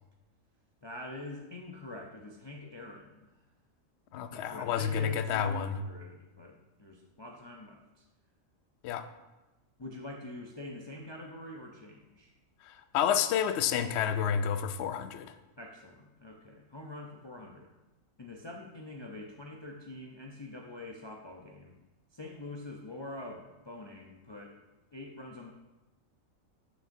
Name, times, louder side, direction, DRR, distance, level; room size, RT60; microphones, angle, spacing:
voice 1, 0.8-3.3 4.1-8.0 9.8-12.3 15.6-17.7 18.2-21.8 22.1-24.6 24.9-25.5, left 2 dB, 40° left, 0 dB, 0.3 m, -45 dB
voice 2, 4.1-5.8 8.8-9.1 12.7-15.3, left 8 dB, 65° left, 10 dB, 0.7 m, -30 dB
11.5 x 6.2 x 2.7 m, 1.1 s
omnidirectional pair, 1.4 m